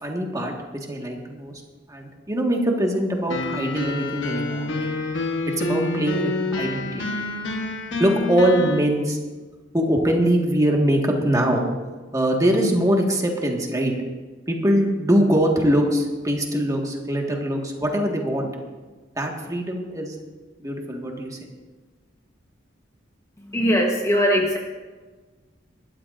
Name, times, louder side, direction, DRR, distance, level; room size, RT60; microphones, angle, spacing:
voice 1, 0.0-0.5 0.9-1.6 1.9-4.9 5.5-6.3 6.6-7.1 8.0-9.2 9.7-11.6 12.1-13.9 14.5-18.5 19.1-20.1 20.6-21.4, right 1 dB, 20° right, 0 dB, 1.6 m, -22 dB
sound 1, 3.3-8.8, left 2 dB, 75° left, 1.2 m, -27 dB
voice 2, 23.4-24.6, equal, 15° left, 0 dB, 1.1 m, -20 dB
21.5 x 12.5 x 2.6 m, 1.3 s
head